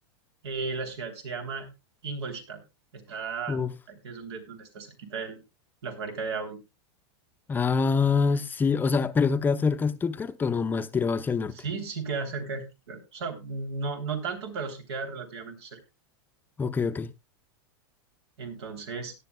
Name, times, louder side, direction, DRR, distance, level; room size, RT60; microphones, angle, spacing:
voice 1, 0.4-1.7 2.0-2.6 2.9-3.6 3.9-5.4 5.8-6.6 11.5-15.8 18.4-19.1, right 4 dB, 80° right, 3.1 m, -35 dB
voice 2, 7.5-11.5 16.6-17.1, left 5 dB, 15° left, 0.6 m, -25 dB
18.0 x 10.0 x 2.2 m
supercardioid pair, 135°, 14 cm